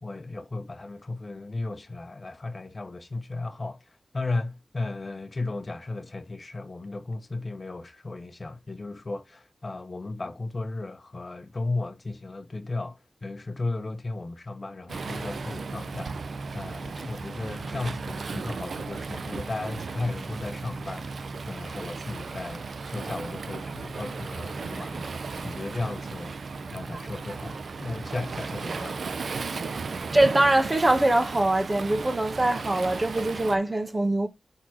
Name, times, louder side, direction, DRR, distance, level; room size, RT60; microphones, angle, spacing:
voice 1, 0.0-16.1 16.5-25.1 25.4-26.4 26.7-29.0, left 2 dB, 45° left, 1.2 m, -35 dB
Waves surf, 14.9-33.6, right 4 dB, 75° right, 0.6 m, -35 dB
voice 2, 30.1-34.3, right 1 dB, 30° right, 1.5 m, -23 dB
6.0 x 4.0 x 6.2 m
cardioid pair, 45°, 0 cm